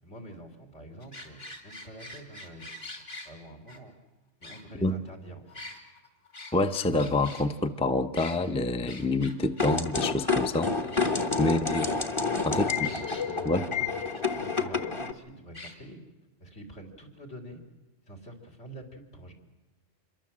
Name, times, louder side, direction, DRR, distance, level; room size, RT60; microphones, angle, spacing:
voice 1, 0.0-4.0 4.4-5.6 11.2-11.4 12.3-16.0 16.4-17.6 18.1-19.3, right 1 dB, 65° left, 2 dB, 3.9 m, -46 dB
sound 1, 1.0-3.3 3.7-3.8 4.4-5.1 5.5-7.5 8.1-8.4 8.9-9.8 10.1-10.2 10.4-10.5 10.9-11.5 12.8-13.3 14.1-14.2 14.5-14.6 15.5-15.8, left 2 dB, 50° left, 3.3 m, -44 dB
voice 2, 6.5-10.7 11.4-11.9 12.5-12.7 13.5-13.7, left 2 dB, 5° left, 9 dB, 0.6 m, -27 dB
sound 2, 9.6-15.1, left 4 dB, 25° left, 1.1 m, -29 dB
27.0 x 23.0 x 7.5 m, 1.1 s
omnidirectional pair, 1.3 m